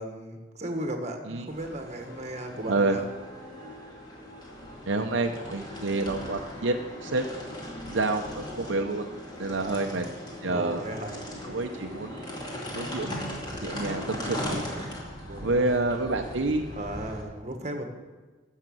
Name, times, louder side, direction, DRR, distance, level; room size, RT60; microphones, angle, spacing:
voice 1, 0.0-3.1 9.6-10.1 10.4-11.2 14.4-14.5 14.7-16.1 16.7-17.9, right 1 dB, 35° right, 5 dB, 1.4 m, -36 dB
sound 1, 1.5-17.2, equal, 20° left, 2.5 m, -39 dB
voice 2, 4.9-7.3 7.9-9.1 9.4-10.0 10.4-10.8 11.5-12.3 12.7-14.6 15.4-16.6, right 2 dB, 65° right, 4 dB, 0.7 m, -28 dB
13.5 x 6.6 x 7.8 m, 1.3 s
head